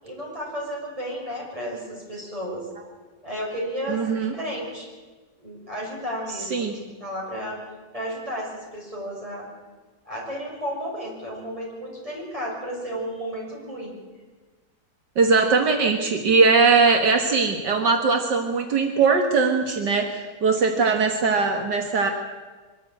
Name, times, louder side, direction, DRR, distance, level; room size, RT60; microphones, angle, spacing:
voice 1, 0.0-2.6 3.2-4.9 5.4-7.6 7.9-9.5 10.0-13.9, equal, 20° right, -3 dB, 6.9 m, -33 dB
voice 2, 3.9-4.3 6.4-6.8 15.2-22.1, right 4 dB, 75° right, 4 dB, 2.2 m, -20 dB
23.5 x 13.0 x 8.9 m, 1.3 s
omnidirectional pair, 1.9 m